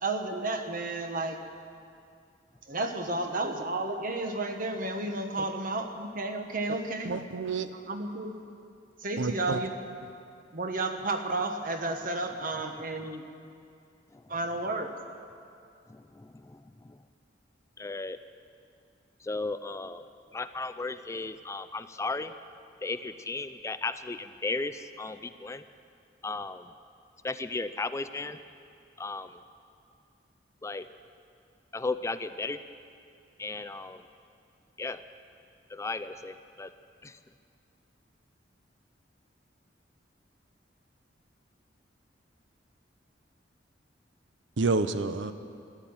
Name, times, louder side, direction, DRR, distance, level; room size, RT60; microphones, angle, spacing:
voice 1, 0.0-1.4 2.7-7.1 7.9-8.3 9.0-9.7 10.5-13.2 14.3-14.9, right 2 dB, 50° right, 5 dB, 1.3 m, -32 dB
voice 2, 7.0-7.7 9.2-9.6 44.6-45.3, right 3 dB, 85° right, 10 dB, 0.7 m, -28 dB
voice 3, 15.9-17.0 17.8-18.2 19.2-20.0 20.3-22.3 22.8-25.6 26.2-26.6 27.2-28.4 29.0-29.3 30.6-30.8 31.7-32.6 33.4-34.0 34.8-35.0 35.7-36.7 37.0-37.2, left 3 dB, 15° left, 11 dB, 0.4 m, -35 dB
14.5 x 11.5 x 8.8 m, 2.4 s
head